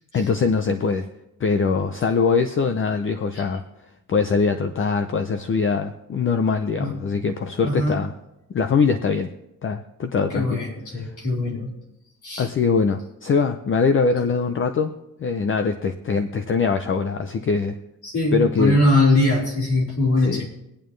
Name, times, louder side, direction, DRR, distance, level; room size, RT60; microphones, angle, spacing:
voice 1, 0.1-1.1 1.4-3.6 4.1-8.1 8.5-9.3 9.6-10.6 11.0-11.1 12.4-14.9 15.2-17.8 18.3-18.8 20.3-20.5, left 5 dB, 35° left, 8 dB, 0.6 m, -22 dB
voice 2, 7.6-8.0 10.3-11.7 12.2-12.5 18.0-20.5, left 2 dB, 55° left, -3 dB, 4.1 m, -21 dB
24.5 x 9.0 x 3.2 m, 0.90 s
wide cardioid pair, 175°, 35 cm